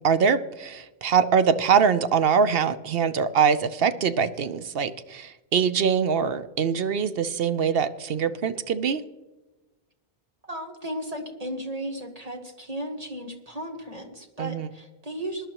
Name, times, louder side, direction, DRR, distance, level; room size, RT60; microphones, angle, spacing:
voice 1, 0.0-9.0 14.4-14.7, right 6 dB, 65° right, 12 dB, 0.9 m, -23 dB
voice 2, 10.4-15.5, right 1 dB, 35° right, 3 dB, 1.4 m, -35 dB
21.5 x 11.0 x 3.0 m, 1.1 s
omnidirectional pair, 1.1 m